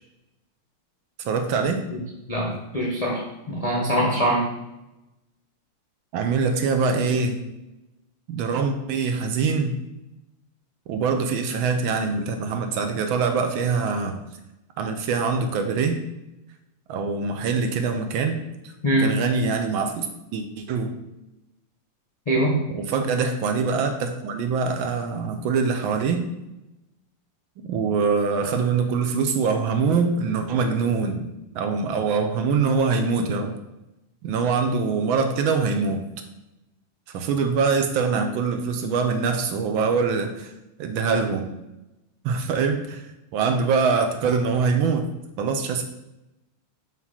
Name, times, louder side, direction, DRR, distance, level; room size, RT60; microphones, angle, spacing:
voice 1, 1.2-1.8 6.1-7.4 8.3-9.8 10.9-14.2 14.8-16.0 16.9-18.4 19.0-20.1 20.3-20.9 22.7-26.2 27.7-31.3 31.5-33.5 34.2-36.1 37.1-40.5 40.8-41.5 42.2-43.0 43.3-45.1 45.4-45.8, right 5 dB, 75° right, 6 dB, 1.3 m, -23 dB
voice 2, 2.3-4.4 18.8-19.2 22.3-22.6, right 1 dB, 90° left, -3 dB, 0.3 m, -23 dB
5.8 x 3.1 x 5.5 m, 0.93 s
omnidirectional pair, 2.4 m